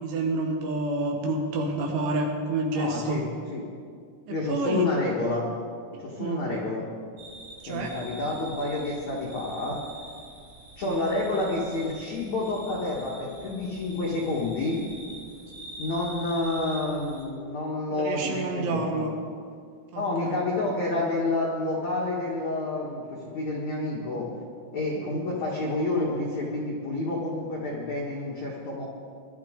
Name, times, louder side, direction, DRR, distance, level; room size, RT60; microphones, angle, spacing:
voice 1, 0.0-3.2 4.3-4.9 6.2-6.4 7.6-8.0 10.8-11.0 17.9-19.1 19.9-20.4 25.0-25.2, right 2 dB, 70° right, 1 dB, 3.6 m, -29 dB
voice 2, 2.7-3.6 4.3-5.5 6.0-6.9 7.7-9.8 10.8-14.8 15.8-19.0 19.9-24.3 24.7-28.9, left 2 dB, 70° left, -4 dB, 1.7 m, -29 dB
sound 1, 7.2-17.2, right 1 dB, 50° right, 4.1 m, -45 dB
21.0 x 12.0 x 3.7 m, 2.2 s
omnidirectional pair, 5.9 m